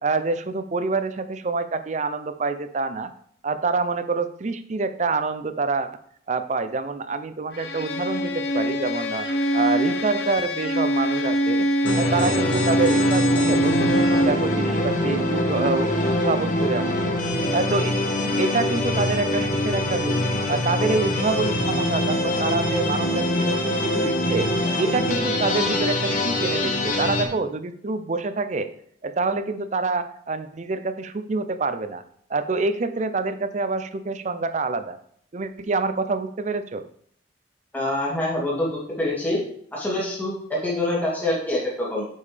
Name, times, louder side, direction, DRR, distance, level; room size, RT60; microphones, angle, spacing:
voice 1, 0.0-3.1 3.4-5.9 6.3-9.3 9.5-11.7 12.0-17.1 17.5-18.0 18.4-20.2 20.5-24.5 24.8-28.7 29.0-32.0 32.3-35.0 35.3-36.8, right 3 dB, 40° right, 11 dB, 0.5 m, -26 dB
Bowed string instrument, 7.5-14.5, equal, 70° left, 1.0 m, -23 dB
sound 1, 11.8-27.2, left 1 dB, 50° left, 1.2 m, -24 dB
voice 2, 37.7-39.4 39.7-42.1, left 1 dB, 10° left, -5 dB, 2.0 m, -25 dB
8.3 x 5.4 x 3.4 m, 0.63 s
head